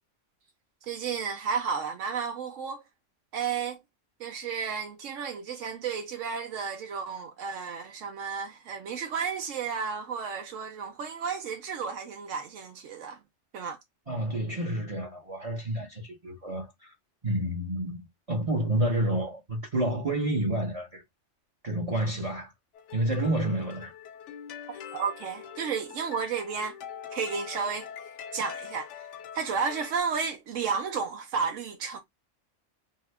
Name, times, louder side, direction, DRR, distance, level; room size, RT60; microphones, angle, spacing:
voice 1, 0.8-2.8 3.3-3.8 4.2-13.2 13.5-13.8 24.7-26.8 27.1-27.9 28.3-29.1 29.3-32.0, right 6 dB, 85° right, 1.0 m, -32 dB
voice 2, 14.1-16.9 17.2-21.0 21.6-22.5 22.9-23.9, right 1 dB, 30° right, 0.8 m, -29 dB
sound 1, 22.7-30.0, left 8 dB, 70° left, 0.9 m, -43 dB
2.8 x 2.6 x 3.2 m
omnidirectional pair, 1.3 m